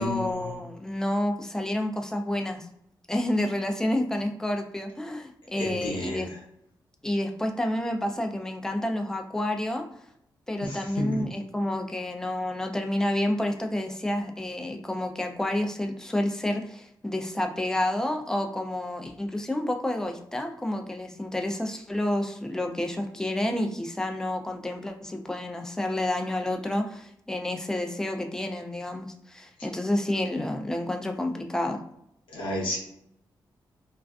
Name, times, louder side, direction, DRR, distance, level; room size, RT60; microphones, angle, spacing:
voice 1, 0.0-2.7 3.1-6.3 7.0-9.9 10.5-31.8, left 1 dB, 5° left, 4 dB, 0.3 m, -29 dB
voice 2, 5.6-6.2 10.6-11.2 32.3-32.8, left 1 dB, 80° left, -2 dB, 0.7 m, -31 dB
2.4 x 2.3 x 2.2 m, 0.76 s
cardioid pair, 110°, 8 cm